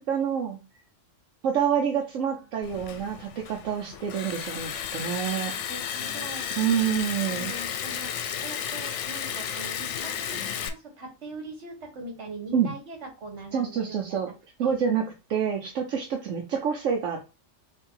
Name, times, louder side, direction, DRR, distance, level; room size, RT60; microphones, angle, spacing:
voice 1, 0.1-0.6 1.4-5.5 6.6-7.5 12.5-12.7 13.5-14.3 14.6-15.0 15.3-17.3, right 8 dB, 80° right, 0 dB, 1.1 m, -27 dB
Liquid, 2.6-10.7, left 8 dB, 75° left, 0.9 m, -33 dB
voice 2, 2.6-3.2 3.8-4.2 4.9-5.1 5.5-6.6 7.3-8.1 8.4-14.3 14.6-14.7, right 2 dB, 65° right, 3 dB, 1.6 m, -42 dB
4.4 x 2.9 x 3.8 m, 0.29 s
omnidirectional pair, 1.3 m